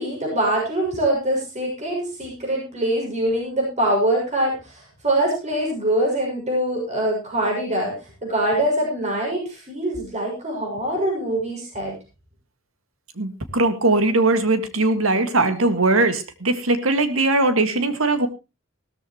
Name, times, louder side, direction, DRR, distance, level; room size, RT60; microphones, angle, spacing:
voice 1, 0.0-12.0, right 1 dB, 35° right, -1 dB, 6.8 m, -24 dB
voice 2, 13.2-18.3, right 2 dB, 75° right, 10 dB, 1.9 m, -20 dB
17.0 x 13.5 x 3.0 m, 0.27 s
head